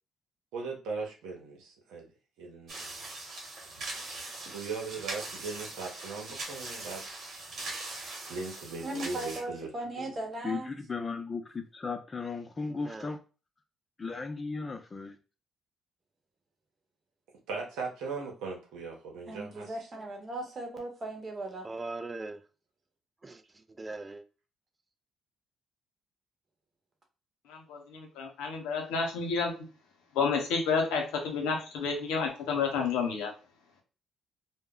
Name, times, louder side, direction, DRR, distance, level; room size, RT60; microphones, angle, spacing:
voice 1, 0.5-2.1 2.4-2.9 4.4-7.0 8.3-10.0 17.5-19.7, right 4 dB, 85° right, 0.8 m, -39 dB
sound 1, 2.7-9.4, right 2 dB, 60° right, 1.1 m, -41 dB
voice 2, 8.8-10.7 19.3-21.7, right 1 dB, 40° right, 0.9 m, -38 dB
voice 3, 10.4-13.2 14.0-15.2, left 4 dB, 30° left, 0.5 m, -36 dB
voice 4, 12.7-13.1 21.6-22.4 23.2-23.4 23.7-24.2, right 2 dB, 25° right, 0.4 m, -40 dB
voice 5, 27.5-29.5 30.1-33.3, left 5 dB, 90° left, 0.7 m, -30 dB
2.2 x 2.0 x 3.6 m
supercardioid pair, 70°, 0 cm